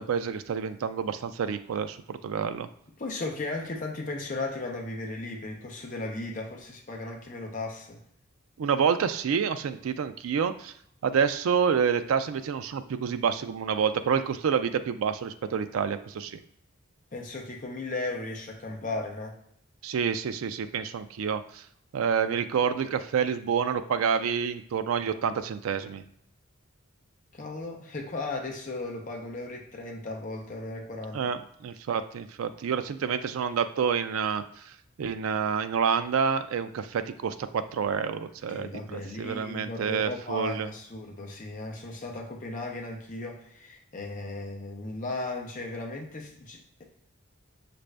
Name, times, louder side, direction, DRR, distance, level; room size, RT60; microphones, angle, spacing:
voice 1, 0.0-2.7 8.6-10.7 11.0-16.4 19.8-21.6 21.9-26.0 31.1-34.4 35.0-40.7, right 6 dB, 75° right, 10 dB, 0.4 m, -28 dB
voice 2, 3.0-8.0 17.1-19.4 27.3-31.2 38.5-46.8, left 2 dB, 35° left, 1 dB, 0.7 m, -36 dB
5.9 x 2.5 x 3.3 m, 0.71 s
head